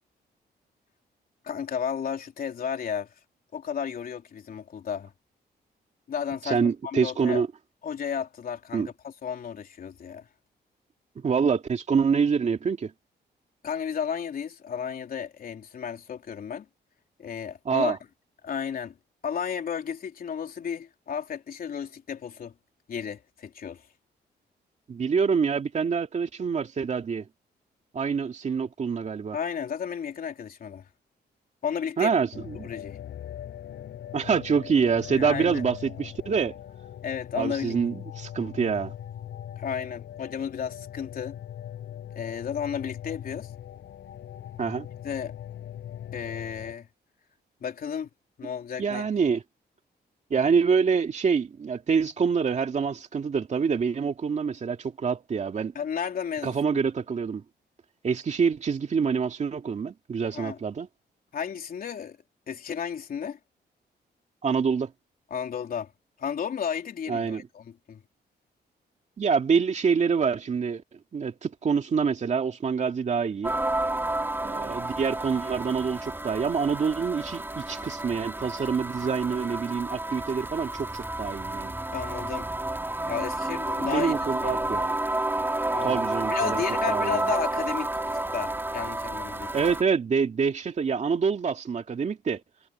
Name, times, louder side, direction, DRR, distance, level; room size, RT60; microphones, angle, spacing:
voice 1, 1.4-3.1 3.5-5.1 6.1-7.4 7.8-10.3 13.6-16.7 17.2-18.0 18.4-19.0 19.2-22.5 22.9-23.9 29.3-30.9 31.6-32.1 32.6-33.0 35.1-35.6 37.0-37.8 39.6-41.4 42.1-43.5 45.0-45.3 46.1-46.9 47.6-48.1 48.4-49.1 55.8-56.5 60.3-60.6 61.3-62.2 62.5-63.4 65.3-65.9 66.2-68.0 81.9-82.5 83.1-84.8 85.7-86.0 86.3-89.5, left 7 dB, 55° left, 3.5 m, -33 dB
voice 2, 6.4-7.5 8.7-8.9 11.2-12.9 17.6-18.0 24.9-27.3 27.9-29.4 32.0-32.7 34.1-36.6 37.3-38.9 44.6-44.9 48.8-49.4 50.3-55.7 56.4-57.4 58.0-60.9 64.4-64.9 67.1-67.5 69.2-73.5 74.4-81.7 83.8-84.9 85.8-87.3 89.5-92.4, right 6 dB, 40° right, 2.4 m, -26 dB
sound 1, 32.3-46.7, left 10 dB, 85° left, 6.7 m, -41 dB
sound 2, 73.4-89.8, right 2 dB, 10° right, 4.4 m, -30 dB
wide cardioid pair, 140°, 18 cm